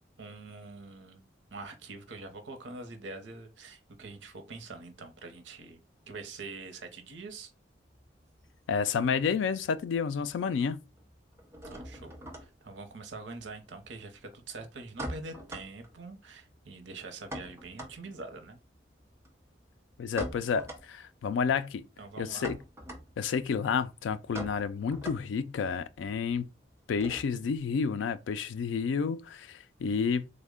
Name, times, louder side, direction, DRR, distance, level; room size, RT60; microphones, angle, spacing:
voice 1, 0.2-1.2 1.5-5.8 6.1-7.5 11.6-18.6 22.0-22.5, right 3 dB, 85° right, 0.7 m, -44 dB
sound 1, 7.8-9.3 9.6-10.3 10.6-27.6, right 1 dB, 15° right, 0.6 m, -45 dB
voice 2, 8.7-10.8 20.0-21.8 22.2-22.6 23.2-26.5 26.9-30.3, left 6 dB, 90° left, 0.3 m, -30 dB
3.4 x 2.1 x 3.5 m
head